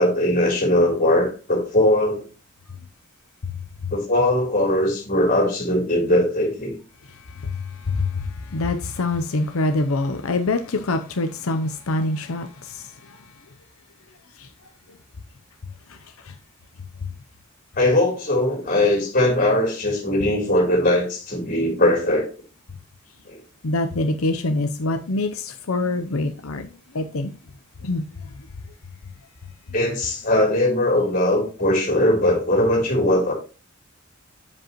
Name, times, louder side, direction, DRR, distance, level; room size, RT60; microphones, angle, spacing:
voice 1, 0.0-2.2 3.9-6.7 17.8-22.3 23.3-23.4 29.7-33.3, left 1 dB, 40° left, 3.6 m, -20 dB
voice 2, 7.1-13.2 14.4-14.5 15.9-16.3 23.6-26.7 26.9-27.3 27.8-28.0, left 2 dB, 85° left, 0.7 m, -25 dB
7.6 x 7.6 x 3.0 m
head